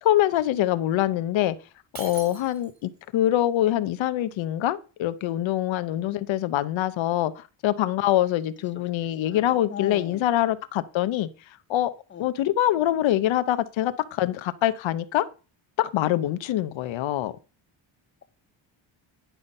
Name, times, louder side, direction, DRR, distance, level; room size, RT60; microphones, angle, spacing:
voice 1, 0.0-1.6 2.0-11.3 11.7-11.9 12.2-15.3 15.8-17.3, left 13 dB, 75° left, 0.7 m, -24 dB
Shatter, 1.9-3.0, right 4 dB, 35° right, 3.4 m, -41 dB
voice 2, 9.2-10.3 12.1-12.2, left 8 dB, 25° left, 0.8 m, -39 dB
10.0 x 5.7 x 5.4 m
cardioid pair, 155°, 47 cm